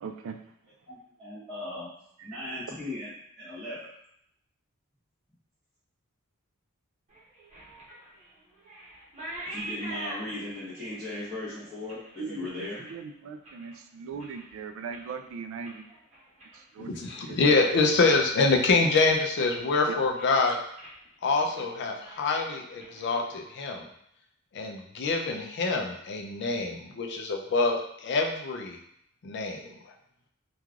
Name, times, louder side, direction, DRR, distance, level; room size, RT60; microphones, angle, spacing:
voice 1, 0.0-0.4 2.2-2.4 12.2-15.9 16.5-17.6 19.9-20.0, right 5 dB, 65° right, 6 dB, 0.3 m, -40 dB
voice 2, 0.9-1.9 2.2-3.1 3.4-3.8 9.5-12.0 12.3-12.8, left 1 dB, ahead, -15 dB, 1.0 m, -37 dB
sound 1, 7.1-13.8 14.1-14.6 14.9-17.3 17.6-18.1 18.4-18.5 18.9-19.7 20.0-20.4 20.8-21.0 21.3-21.7 21.9-23.8, right 1 dB, 30° right, 0.9 m, -45 dB
voice 3, 16.9-20.6 21.2-23.8 24.5-28.8 29.2-29.7, left 3 dB, 55° left, 2 dB, 0.4 m, -26 dB
3.1 x 2.3 x 2.3 m, 0.73 s
head